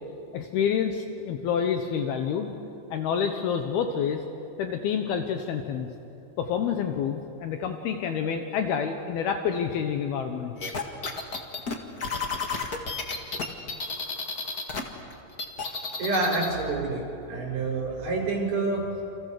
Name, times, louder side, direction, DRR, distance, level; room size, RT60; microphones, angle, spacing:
voice 1, 0.3-2.5 2.9-4.2 4.6-5.9 6.4-10.5, left 7 dB, 75° left, 6 dB, 2.9 m, -28 dB
sound 1, 10.6-14.8 15.1-16.5, left 4 dB, 45° left, 1.3 m, -31 dB
voice 2, 16.0-17.0 17.3-18.8, right 3 dB, 45° right, -2 dB, 6.9 m, -27 dB
29.0 x 27.5 x 6.7 m, 2.8 s
omnidirectional pair, 4.7 m